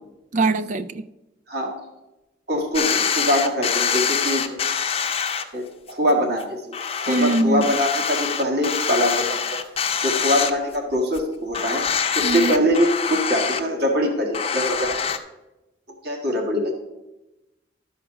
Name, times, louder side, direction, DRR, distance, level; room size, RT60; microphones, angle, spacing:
voice 1, 0.3-1.0 7.1-7.7 12.2-12.5, right 2 dB, 40° right, 12 dB, 0.3 m, -22 dB
voice 2, 2.5-4.6 5.5-9.2 10.0-11.8 12.1-15.0 16.0-16.7, equal, 55° right, 1 dB, 1.7 m, -23 dB
sound 1, 2.7-5.4 5.9-6.0 6.4-6.5 6.7-10.9 11.1-11.2 11.5-13.6 14.3-15.2, left 7 dB, 30° left, 0.7 m, -25 dB
12.5 x 5.0 x 5.9 m, 0.98 s
head